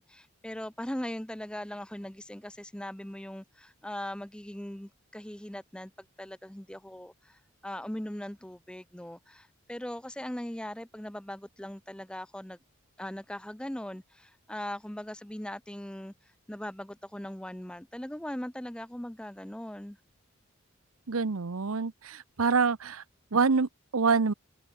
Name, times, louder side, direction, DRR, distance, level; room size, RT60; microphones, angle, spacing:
voice 1, 0.0-12.6 13.0-16.1 16.5-20.0, left 1 dB, 5° left, 0.5 m, -40 dB
voice 2, 21.1-23.0 23.3-24.3, right 5 dB, 85° right, 0.8 m, -26 dB
open air
head